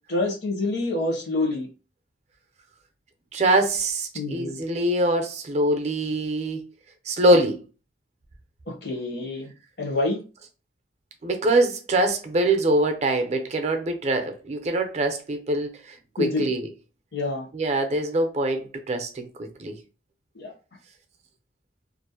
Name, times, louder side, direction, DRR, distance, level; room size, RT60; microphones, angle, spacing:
voice 1, 0.1-1.7 4.1-4.6 8.7-9.5 9.8-10.2 16.2-16.6 17.1-17.5 20.3-20.5, left 2 dB, 65° left, 0.8 m, -27 dB
voice 2, 3.3-6.6 7.1-7.6 11.2-15.7 16.2-16.7 17.5-19.7, right 1 dB, 40° right, 0.4 m, -23 dB
2.5 x 2.0 x 2.7 m
head